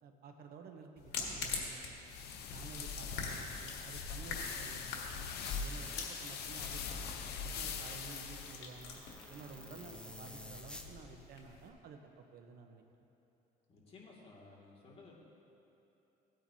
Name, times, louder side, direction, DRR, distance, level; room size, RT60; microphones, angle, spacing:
voice 1, 0.0-2.1 2.5-5.3 5.6-9.0 9.3-12.8, right 5 dB, 65° right, 4 dB, 1.0 m, -52 dB
sound 1, 1.0-11.7, left 5 dB, 90° left, 1.5 m, -45 dB
sound 2, 2.1-8.6, left 6 dB, 70° left, 0.9 m, -42 dB
sound 3, 5.4-10.9, left 1 dB, 5° left, 0.8 m, -53 dB
voice 2, 13.7-15.1, left 3 dB, 35° left, -4 dB, 2.3 m, -56 dB
17.0 x 9.0 x 2.8 m, 3.0 s
cardioid pair, 110°, 17 cm